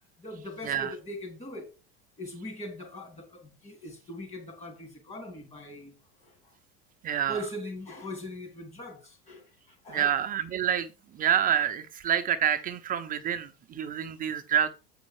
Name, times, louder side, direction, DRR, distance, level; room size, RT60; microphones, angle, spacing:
voice 1, 0.2-1.7 2.2-6.0 6.2-6.5 7.1-10.1, equal, 25° left, 3.6 m, -41 dB
voice 2, 7.0-7.4 9.9-10.9 11.1-14.7, right 9 dB, 30° right, 0.7 m, -27 dB
8.3 x 5.3 x 4.8 m
supercardioid pair, 140°, 29 cm